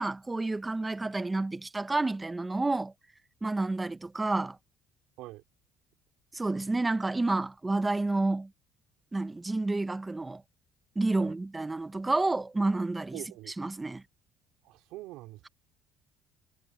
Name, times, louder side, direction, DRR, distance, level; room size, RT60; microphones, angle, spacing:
voice 1, 0.0-2.9 3.4-4.6 6.3-8.5 9.1-10.4 11.0-14.0, right 2 dB, 15° right, 1.0 m, -30 dB
voice 2, 13.1-13.5 14.6-15.5, right 18 dB, 80° right, 4.8 m, -44 dB
cardioid pair, 120°, 0 cm